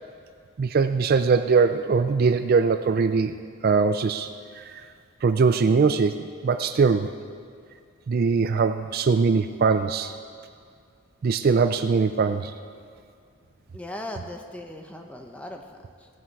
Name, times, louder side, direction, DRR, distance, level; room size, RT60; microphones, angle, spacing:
voice 1, 0.6-4.3 4.6-4.9 5.2-7.1 8.1-10.2 11.2-12.5, right 5 dB, 45° right, 9 dB, 0.3 m, -22 dB
voice 2, 13.7-16.1, left 1 dB, 5° left, 3 dB, 0.8 m, -38 dB
17.0 x 9.1 x 4.7 m, 2.3 s
head